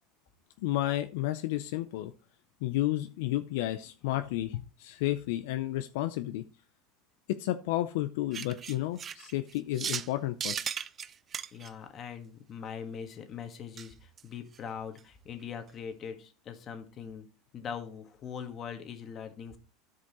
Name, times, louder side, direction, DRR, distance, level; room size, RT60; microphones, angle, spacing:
voice 1, 0.6-2.1 2.6-6.4 7.3-10.7, left 15 dB, 75° left, 10 dB, 0.5 m, -32 dB
sound 1, 8.3-10.1 10.4-11.7 13.8-13.9 14.2-14.3 14.5-14.6 15.0-15.1, right 7 dB, 30° right, 0.4 m, -36 dB
voice 2, 11.5-17.3 17.5-19.6, left 7 dB, 40° left, 6 dB, 1.6 m, -41 dB
13.0 x 5.1 x 3.0 m, 0.35 s
supercardioid pair, 110°, 0 cm